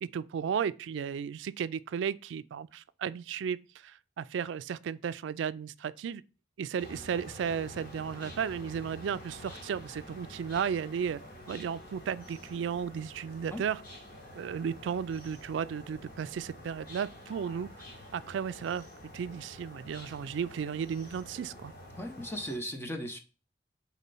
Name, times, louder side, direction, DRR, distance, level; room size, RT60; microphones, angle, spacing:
voice 1, 0.0-6.2 6.6-11.2 11.5-13.8 14.4-17.7 18.1-18.9 19.1-21.7, right 7 dB, 85° right, 0.3 m, -34 dB
sound 1, 6.8-22.6, left 1 dB, 50° left, 1.8 m, -48 dB
voice 2, 21.9-23.2, equal, 15° left, 0.7 m, -37 dB
4.3 x 4.2 x 5.3 m
head